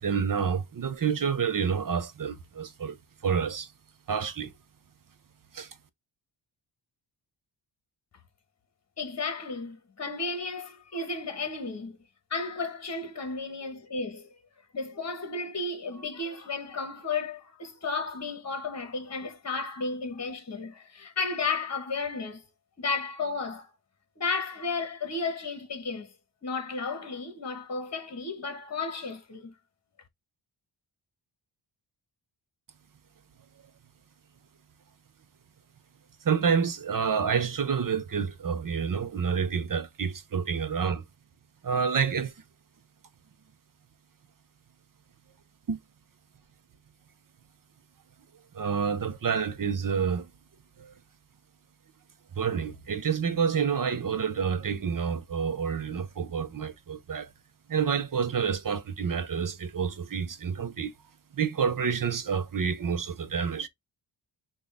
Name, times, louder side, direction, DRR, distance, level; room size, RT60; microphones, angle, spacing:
voice 1, 0.0-3.0 3.2-3.7 4.1-4.5 5.5-5.7 36.2-41.0 41.6-42.3 45.7-45.8 48.5-50.3 50.8-50.9 52.4-57.3 57.7-60.9 61.3-63.7, right 6 dB, 40° right, 0.7 m, -28 dB
voice 2, 9.0-12.0 12.3-14.3 14.7-22.4 22.8-23.7 24.2-26.1 26.4-29.5, left 4 dB, 30° left, 1.3 m, -33 dB
6.0 x 2.5 x 3.5 m
wide cardioid pair, 115°, 49 cm